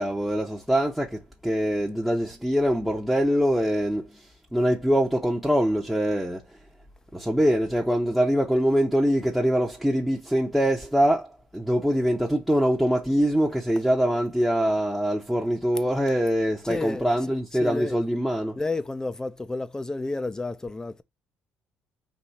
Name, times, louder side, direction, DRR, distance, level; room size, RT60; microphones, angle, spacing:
voice 1, 0.0-4.2 4.5-6.4 7.1-18.6, equal, 5° right, 0.9 m, -23 dB
voice 2, 16.6-17.1 17.5-18.0 18.5-21.0, left 2 dB, 15° left, 0.6 m, -31 dB
4.1 x 2.7 x 4.5 m
supercardioid pair, 80°, 4 cm